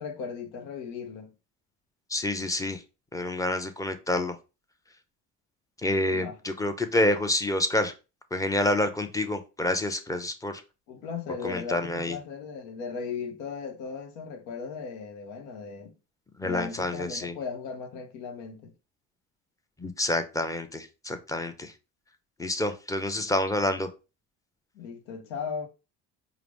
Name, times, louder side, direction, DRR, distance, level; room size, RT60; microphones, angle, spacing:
voice 1, 0.0-1.3 6.1-6.4 10.9-15.9 16.4-18.7 23.2-23.3 24.7-25.7, left 5 dB, 80° left, 0.9 m, -37 dB
voice 2, 2.1-2.8 3.1-4.4 5.8-7.9 8.3-10.6 11.4-12.2 16.4-17.4 19.8-21.7 22.4-23.9, left 1 dB, 10° left, 0.6 m, -28 dB
4.8 x 2.0 x 3.4 m
supercardioid pair, 80°, 36 cm